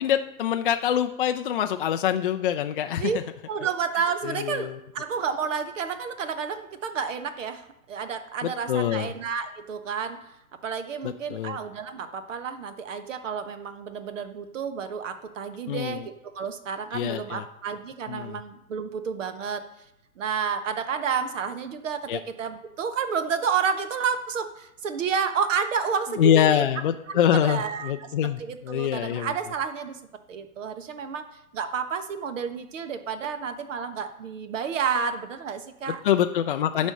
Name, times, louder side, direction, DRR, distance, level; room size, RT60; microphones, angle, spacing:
voice 1, 0.0-3.1 4.2-4.8 8.4-9.1 11.0-11.6 15.7-16.1 16.9-17.4 18.1-18.4 22.1-22.2 26.2-29.3 35.9-36.9, left 10 dB, 40° left, 6 dB, 0.4 m, -25 dB
voice 2, 3.5-10.3 10.6-19.6 20.2-26.7 27.1-28.1 28.4-30.0 30.3-31.2 31.5-36.0 36.8-36.9, right 6 dB, 60° right, 9 dB, 1.3 m, -30 dB
9.7 x 5.2 x 6.7 m, 0.87 s
hypercardioid pair, 125°, 43 cm